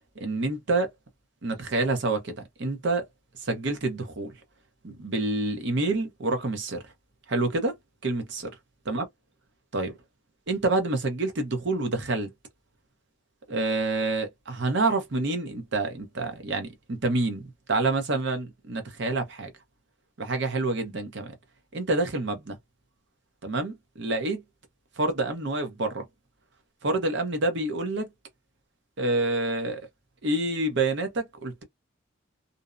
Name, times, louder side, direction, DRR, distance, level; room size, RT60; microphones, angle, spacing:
voice 1, 0.2-0.9 1.4-3.0 3.4-4.3 4.8-6.8 7.3-7.8 8.0-8.5 8.9-9.0 9.7-10.0 10.5-12.3 13.5-19.5 20.2-21.3 21.7-22.6 23.4-24.4 25.0-26.0 26.8-28.1 29.0-29.8 30.2-31.6, right 2 dB, 60° right, 0.7 m, -27 dB
2.6 x 2.0 x 2.4 m
head